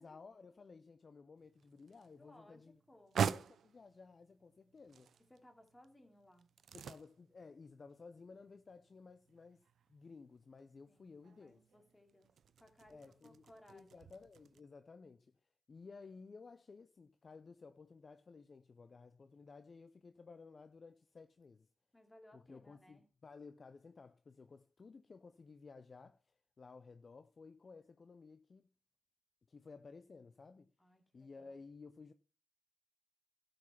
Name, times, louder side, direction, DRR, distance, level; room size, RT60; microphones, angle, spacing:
voice 1, 0.0-2.8 3.2-5.1 6.7-9.6 9.9-11.6 12.9-13.4 13.7-15.3 15.7-21.7 22.3-28.7 29.5-30.7 31.1-32.1, left 4 dB, 55° left, 0.6 m, -56 dB
sound 1, 1.4-14.6, right 7 dB, 85° right, 0.4 m, -46 dB
voice 2, 2.2-3.2 5.3-6.5 10.9-12.3 12.6-14.1 21.9-23.1 30.8-31.6, left 1 dB, 20° left, 2.6 m, -63 dB
12.0 x 5.3 x 5.7 m
cardioid pair, 55°, 0 cm